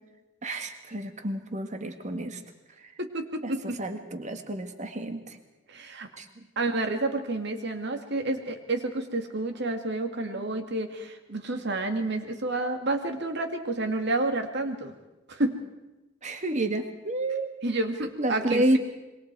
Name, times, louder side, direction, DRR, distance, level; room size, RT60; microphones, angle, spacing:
voice 1, 0.4-2.4 3.4-5.4 6.2-6.4 10.3-10.5 16.2-17.5 18.2-18.8, right 1 dB, 40° right, 7 dB, 1.8 m, -30 dB
voice 2, 3.0-3.8 5.7-6.1 6.6-14.9 15.3-15.6 17.6-18.8, right 2 dB, 60° right, 6 dB, 2.3 m, -30 dB
26.0 x 23.0 x 4.7 m, 1.0 s
head